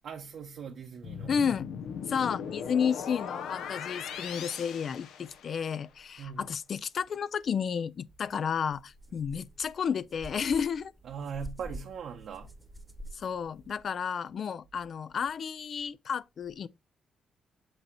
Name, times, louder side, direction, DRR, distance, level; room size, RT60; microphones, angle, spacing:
voice 1, 0.0-1.4 6.2-6.5 11.0-12.6, right 7 dB, 70° right, 0.9 m, -40 dB
sound 1, 1.0-5.8, left 7 dB, 90° left, 0.7 m, -39 dB
voice 2, 1.3-1.7 2.1-10.9 13.1-16.7, left 7 dB, 55° left, 0.3 m, -32 dB
sound 2, 8.1-8.2 8.7-13.7, equal, 5° right, 1.0 m, -47 dB
7.8 x 2.9 x 4.6 m
cardioid pair, 105°, 0 cm